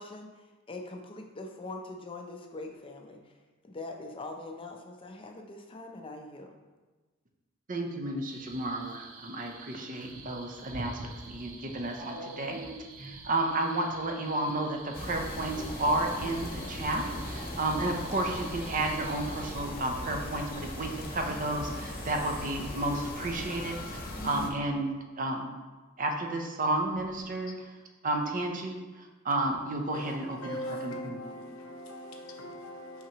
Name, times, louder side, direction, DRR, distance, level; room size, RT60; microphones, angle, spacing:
voice 1, 0.0-3.4 3.6-6.6, left 2 dB, 25° left, 0.5 m, -43 dB
voice 2, 7.7-12.6 13.0-25.5 26.0-27.8 28.0-31.2, right 2 dB, 40° right, 0.7 m, -32 dB
sound 1, 8.2-19.5, right 3 dB, 90° right, 0.7 m, -48 dB
sound 2, 12.0-13.2 14.8-16.9 21.1-21.2 21.4-22.7 23.0-23.1 23.4-23.5 23.8-24.8 26.9-27.2, right 1 dB, 60° right, 1.9 m, -45 dB
sound 3, 14.9-24.5, left 1 dB, 45° left, 0.9 m, -39 dB
voice 3, 29.9-33.1, equal, 85° left, 1.0 m, -41 dB
5.8 x 5.7 x 3.0 m
head